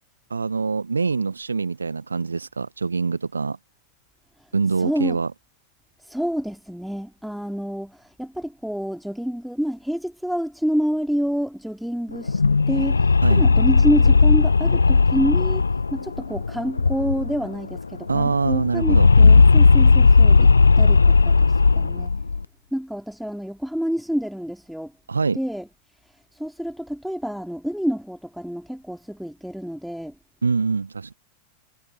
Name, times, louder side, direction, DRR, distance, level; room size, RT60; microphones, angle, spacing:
voice 1, 0.3-3.6 4.5-5.3 13.2-13.4 18.1-19.1 25.1-25.4 30.4-31.1, right 4 dB, 75° right, 1.1 m, -24 dB
voice 2, 4.8-5.2 6.0-12.4 12.7-15.6 15.9-22.1 22.7-24.9 25.3-25.7 26.3-30.2, equal, ahead, 2.6 m, -28 dB
sound 1, 12.1-17.5 17.7-17.8 18.1-22.4, left 4 dB, 80° left, 1.0 m, -16 dB
figure-of-eight pair, 90°, 0 cm